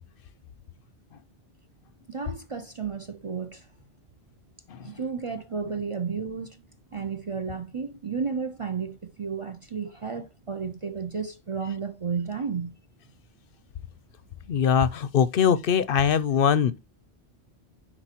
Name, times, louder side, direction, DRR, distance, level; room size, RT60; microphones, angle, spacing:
voice 1, 2.1-3.7 4.8-6.6 6.9-12.7, right 5 dB, 40° right, 0.5 m, -32 dB
voice 2, 14.5-16.8, left 7 dB, 65° left, 0.7 m, -22 dB
9.9 x 4.4 x 2.9 m
omnidirectional pair, 1.1 m